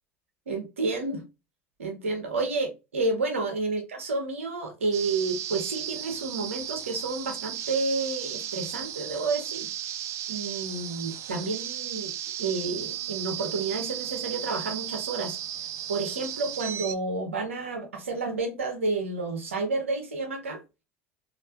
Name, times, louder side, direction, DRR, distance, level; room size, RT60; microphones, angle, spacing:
voice 1, 0.5-1.2 1.8-9.7 10.3-12.1 12.4-15.4 15.9-20.6, right 3 dB, 80° right, 0.8 m, -30 dB
sound 1, 4.9-17.0, right 11 dB, 45° right, 0.4 m, -35 dB
3.3 x 2.5 x 2.7 m
figure-of-eight pair, 70°, 7 cm